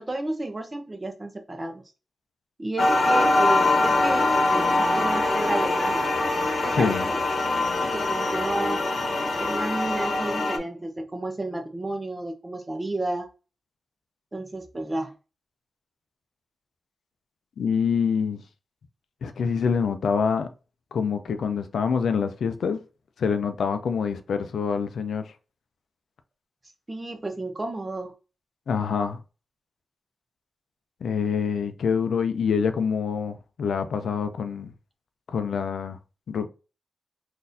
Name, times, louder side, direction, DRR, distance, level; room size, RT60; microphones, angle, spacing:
voice 1, 0.0-1.8 2.6-4.7 4.9-6.0 6.6-7.2 7.8-8.8 9.4-13.3 14.3-15.1 26.9-28.1, right 2 dB, 25° right, 0.8 m, -32 dB
sound 1, 2.8-10.6, left 2 dB, 60° left, 0.9 m, -23 dB
voice 2, 6.7-7.0 17.6-18.4 19.2-20.5 20.9-22.8 23.2-25.2 28.7-29.2 31.0-34.7 35.3-36.0 36.3-36.5, left 6 dB, 85° left, 0.4 m, -26 dB
3.9 x 2.6 x 2.6 m
wide cardioid pair, 95°, 0 cm